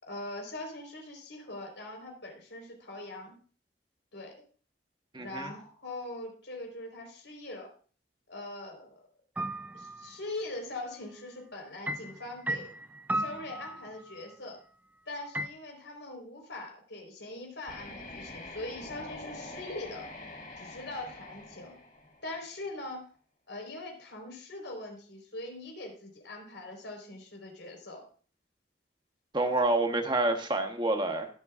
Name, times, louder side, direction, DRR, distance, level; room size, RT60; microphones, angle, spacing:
voice 1, 0.0-3.3 4.1-4.3 5.2-7.7 8.3-9.0 9.7-12.7 13.1-14.6 15.1-20.0 20.6-21.7 22.2-23.1 23.5-28.0, left 2 dB, 75° left, 2 dB, 4.4 m, -42 dB
voice 2, 5.1-5.5 29.3-31.3, right 2 dB, 25° right, 5 dB, 1.1 m, -28 dB
sound 1, 9.4-10.1 11.9-14.2 15.3-15.5, right 1 dB, 10° right, 0.5 m, -35 dB
sound 2, 17.6-22.6, left 2 dB, 50° left, 6.0 m, -45 dB
21.5 x 7.6 x 2.5 m, 0.42 s
head